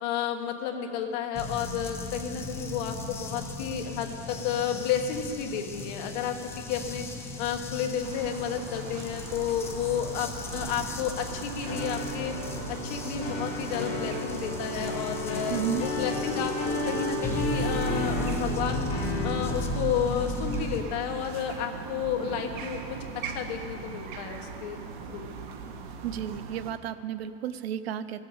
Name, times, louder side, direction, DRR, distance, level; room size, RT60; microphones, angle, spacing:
voice 1, 0.0-7.0 7.4-12.3 12.7-18.9 19.2-23.0 23.3-24.8 25.1-25.3, left 8 dB, 45° left, 4 dB, 1.3 m, -32 dB
sound 1, 1.3-20.8, left 1 dB, 10° left, 0.5 m, -36 dB
sound 2, 8.0-26.7, right 5 dB, 55° right, 1.2 m, -40 dB
sound 3, 11.7-19.9, left 2 dB, 25° left, 2.9 m, -33 dB
voice 2, 15.5-15.9 26.0-28.2, right 10 dB, 85° right, 12 dB, 0.7 m, -32 dB
16.0 x 7.4 x 8.7 m, 2.9 s
supercardioid pair, 175°, 30 cm